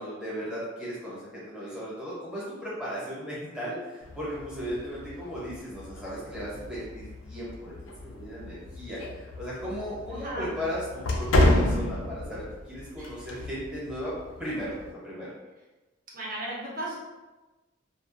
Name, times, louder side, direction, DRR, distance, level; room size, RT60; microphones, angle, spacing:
voice 1, 0.0-7.7 8.0-14.1 14.4-15.3, equal, 5° right, -9 dB, 0.8 m, -36 dB
sound 1, 4.0-14.9, left 1 dB, 80° left, 0.4 m, -31 dB
voice 2, 10.1-10.5 12.9-13.3 16.1-17.0, right 1 dB, 45° right, -5 dB, 0.6 m, -36 dB
2.3 x 2.1 x 2.6 m, 1.1 s
head